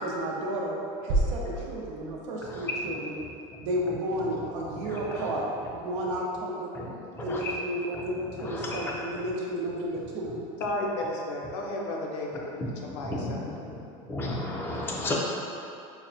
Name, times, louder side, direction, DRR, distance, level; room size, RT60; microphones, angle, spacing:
voice 1, 0.0-0.8 1.0-3.2 3.6-5.5 5.7-6.7 7.2-10.4, right 1 dB, 90° right, -2 dB, 0.7 m, -32 dB
sound 1, 1.1-2.9, right 2 dB, 50° right, 0.4 m, -30 dB
voice 2, 2.4-2.7 4.8-5.3 6.7-6.9 7.2-7.5 8.4-8.9 12.6-12.7 13.0-13.3 13.6-13.8 14.0-15.1, left 2 dB, 15° left, -3 dB, 0.4 m, -33 dB
voice 3, 10.6-13.5, left 1 dB, 85° left, -1 dB, 0.7 m, -33 dB
5.7 x 2.1 x 2.5 m, 2.7 s
cardioid pair, 165°, 15 cm